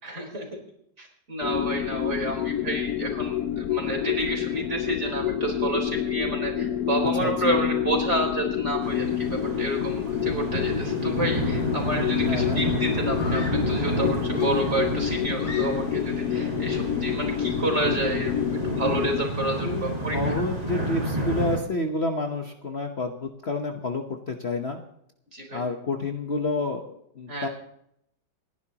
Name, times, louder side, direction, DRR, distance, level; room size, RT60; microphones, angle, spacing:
voice 1, 0.0-0.6 1.0-18.4 18.6-20.4 25.3-25.6 27.3-27.5, right 2 dB, 40° right, 1 dB, 4.5 m, -30 dB
sound 1, 1.4-19.2, left 10 dB, 70° left, 1.1 m, -28 dB
sound 2, 8.8-21.6, right 1 dB, 20° right, 4.3 m, -30 dB
voice 2, 12.2-12.6 19.6-24.8 25.5-27.5, left 2 dB, 40° left, 4 dB, 1.2 m, -29 dB
Screaming, 13.2-13.8 14.3-16.1, left 2 dB, 25° left, 2.8 m, -41 dB
29.0 x 11.0 x 3.0 m, 0.74 s
omnidirectional pair, 1.9 m